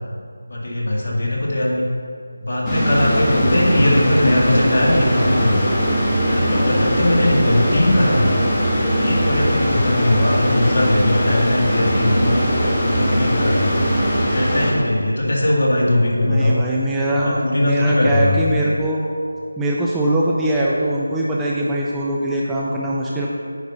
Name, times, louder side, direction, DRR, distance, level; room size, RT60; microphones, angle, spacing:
voice 1, 0.5-1.8 2.4-5.6 6.3-8.3 9.0-12.4 12.8-13.7 14.3-16.6 17.1-18.4, left 1 dB, 55° left, -3 dB, 1.9 m, -19 dB
sound 1, 2.6-14.7, equal, 15° left, 1.3 m, -20 dB
sound 2, 2.9-14.2, equal, 90° left, 1.4 m, -32 dB
voice 2, 16.2-19.0 19.6-23.3, right 1 dB, 5° right, -5 dB, 0.4 m, -21 dB
9.4 x 4.1 x 5.6 m, 2.3 s
figure-of-eight pair, 165°, 0 cm